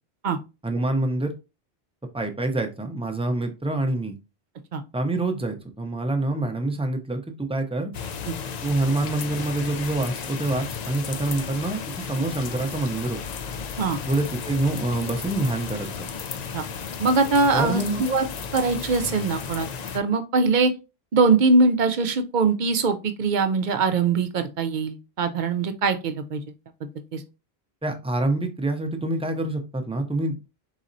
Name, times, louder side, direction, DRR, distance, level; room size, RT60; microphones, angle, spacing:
voice 1, 0.6-1.3 2.1-4.1 4.9-7.9 8.6-13.2 14.1-16.1 17.5-18.0 27.8-30.5, right 2 dB, 10° right, 0.4 m, -26 dB
sound 1, 7.9-20.0, left 6 dB, 55° left, 0.5 m, -34 dB
voice 2, 17.0-18.2 18.5-20.7 21.1-26.4 27.1-27.2, right 4 dB, 55° right, 0.6 m, -22 dB
4.1 x 4.0 x 2.5 m
omnidirectional pair, 1.1 m